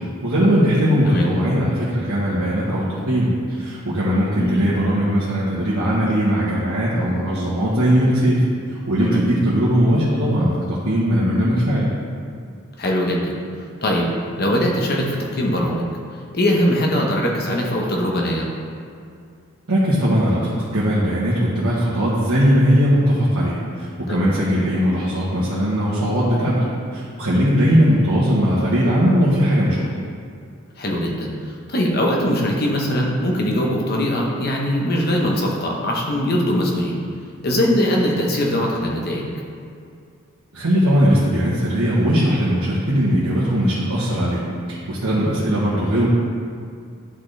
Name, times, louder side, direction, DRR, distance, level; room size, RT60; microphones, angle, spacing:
voice 1, 0.2-11.9 19.7-29.9 40.5-46.1, equal, 90° right, -8 dB, 1.2 m, -19 dB
voice 2, 12.8-13.3 13.8-14.1 14.4-15.9 16.3-18.5 24.1-24.3 30.8-37.0 37.4-39.3, equal, 45° left, -1 dB, 0.9 m, -21 dB
10.5 x 4.3 x 3.3 m, 2.3 s
head